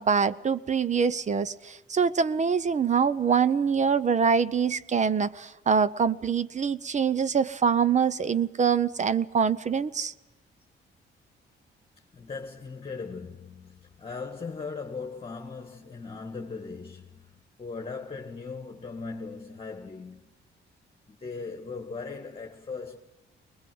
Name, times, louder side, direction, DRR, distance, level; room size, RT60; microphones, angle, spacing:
voice 1, 0.0-10.1, right 6 dB, 35° right, 0.8 m, -24 dB
voice 2, 12.1-20.4 21.1-23.0, left 4 dB, 30° left, 1.8 m, -39 dB
21.5 x 20.5 x 7.9 m
cardioid pair, 90°, 20 cm